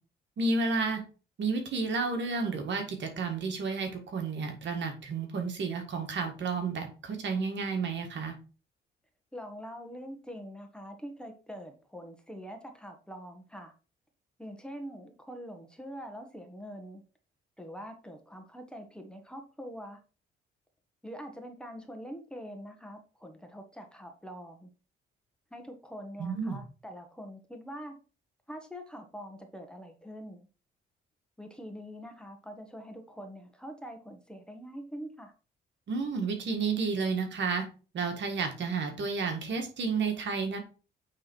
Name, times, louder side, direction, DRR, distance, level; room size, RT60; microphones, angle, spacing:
voice 1, 0.4-1.0 1.4-8.3 26.2-26.6 35.9-37.7 37.9-40.6, right 4 dB, 65° right, 4 dB, 1.9 m, -31 dB
voice 2, 9.3-13.7 14.4-17.0 17.6-20.0 21.0-24.7 25.5-27.9 28.5-30.5 31.4-35.3, equal, 5° left, 4 dB, 1.5 m, -44 dB
8.7 x 3.6 x 4.6 m, 0.35 s
cardioid pair, 90°, 20 cm